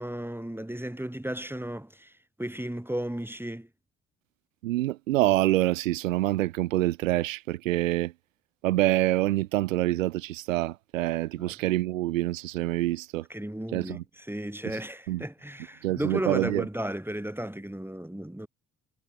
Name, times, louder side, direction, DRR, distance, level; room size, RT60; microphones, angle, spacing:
voice 1, 0.0-3.7 11.4-11.5 13.3-18.5, right 1 dB, 5° right, 6.3 m, -34 dB
voice 2, 4.6-8.1 8.6-13.2 13.7-14.0 15.1-15.2 15.8-16.6, right 16 dB, 80° right, 2.6 m, -26 dB
figure-of-eight pair, 45°, 39 cm